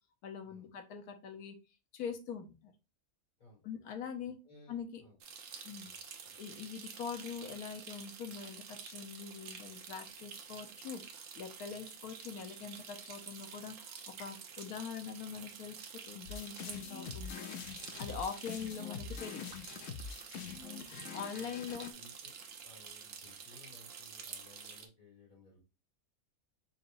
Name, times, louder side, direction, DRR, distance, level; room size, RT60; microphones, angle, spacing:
voice 1, 0.2-1.6 1.9-2.7 3.6-4.4 4.7-5.0 5.6-5.9 6.4-17.6 18.0-19.5 20.4-20.5 21.1-21.9, left 6 dB, 80° left, 7 dB, 1.3 m, -43 dB
voice 2, 4.2-5.2 5.8-6.0 6.2-6.4 15.3-15.5 20.4-20.6 20.9-22.3 22.6-25.6, left 2 dB, 35° left, -4 dB, 3.0 m, -60 dB
sound 1, 5.2-24.9, right 6 dB, 65° right, 1.0 m, -49 dB
sound 2, 16.3-21.9, left 6 dB, 65° left, 0.9 m, -45 dB
4.1 x 3.9 x 2.5 m, 0.29 s
omnidirectional pair, 1.6 m